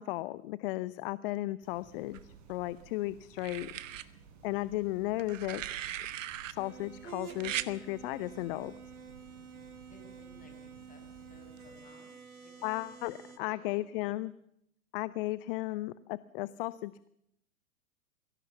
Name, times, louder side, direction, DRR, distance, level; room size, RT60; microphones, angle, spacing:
voice 1, 0.0-3.7 4.4-5.6 6.5-8.8 12.6-14.3 14.9-17.1, left 18 dB, 40° left, 18 dB, 0.7 m, -35 dB
sound 1, 1.6-11.8, right 6 dB, 40° right, 6.7 m, -57 dB
sound 2, 2.1-2.8 3.4-4.1 5.2-6.5 7.4-7.7 9.1-9.3, right 12 dB, 60° right, 1.4 m, -38 dB
sound 3, 6.5-13.4, right 6 dB, 90° right, 2.7 m, -49 dB
voice 2, 9.9-14.2, left 2 dB, 20° left, 3 dB, 6.7 m, -59 dB
22.5 x 17.0 x 7.1 m, 0.75 s
hypercardioid pair, 110°, 42 cm